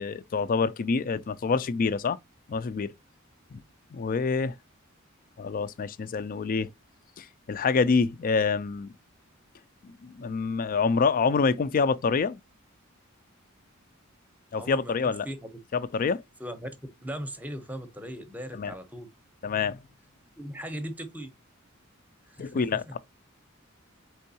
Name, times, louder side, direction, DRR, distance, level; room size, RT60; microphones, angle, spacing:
voice 1, 0.0-2.2 2.5-2.9 3.5-3.6 3.9-4.5 5.4-6.7 7.2-8.9 10.0-12.4 14.5-15.3 15.7-16.2 18.5-18.7 19.4-19.8 22.4-23.0, left 5 dB, 40° left, 0.4 m, -26 dB
voice 2, 14.5-15.5 16.4-16.7 17.0-19.1 20.4-21.3 22.3-22.9, equal, 10° right, 0.7 m, -38 dB
4.5 x 3.8 x 2.7 m
head